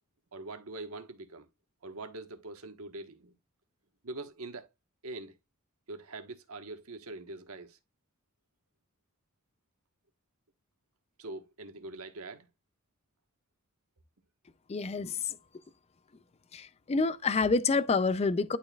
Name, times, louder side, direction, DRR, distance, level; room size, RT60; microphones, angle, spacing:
voice 1, 0.3-1.5 1.8-3.3 4.0-4.7 5.0-5.3 5.9-7.8 11.2-12.5, right 2 dB, 75° right, 1.3 m, -43 dB
voice 2, 14.7-15.4 16.5-18.6, left 4 dB, 30° left, 0.4 m, -28 dB
12.0 x 4.3 x 2.3 m
head